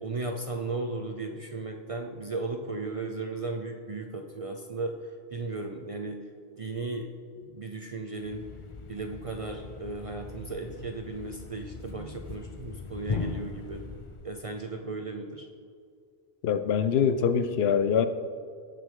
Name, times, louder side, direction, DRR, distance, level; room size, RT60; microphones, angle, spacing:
voice 1, 0.0-6.3 6.6-7.1 7.4-8.5 8.9-13.9 14.2-15.5, right 3 dB, 45° right, 4 dB, 0.5 m, -36 dB
Thump thud, 8.2-14.4, left 4 dB, 40° left, 0.4 m, -39 dB
voice 2, 16.4-18.1, left 7 dB, 70° left, 11 dB, 0.8 m, -24 dB
17.0 x 6.1 x 3.8 m, 2.3 s
omnidirectional pair, 1.1 m